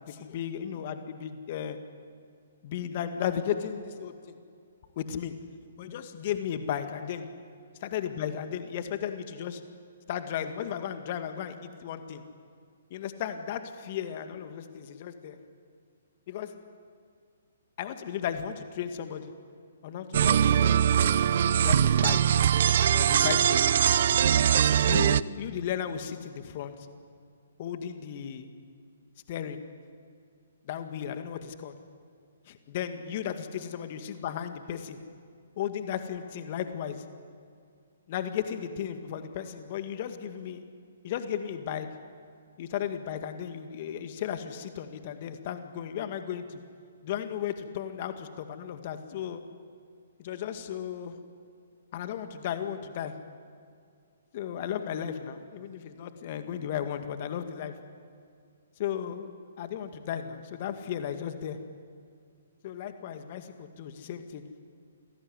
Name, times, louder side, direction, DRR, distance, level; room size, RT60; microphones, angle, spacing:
voice 1, 0.1-1.8 2.6-4.4 5.0-5.3 5.8-7.3 7.9-9.6 10.1-12.2 12.9-15.4 16.3-16.5 17.8-19.3 19.8-22.3 22.9-23.6 24.7-26.7 27.6-28.5 29.3-29.6 30.7-31.7 32.5-35.0 35.6-37.0 38.1-40.6 41.0-41.9 42.7-46.6 47.0-49.4 50.2-51.2 51.9-53.1 54.3-57.7 58.8-59.3 59.6-61.6 62.6-64.4, left 9 dB, 45° left, 8 dB, 2.1 m, -35 dB
sound 1, 20.1-25.2, right 9 dB, 55° right, 0.7 m, -22 dB
28.5 x 20.5 x 9.8 m, 2.3 s
figure-of-eight pair, 130°, 0 cm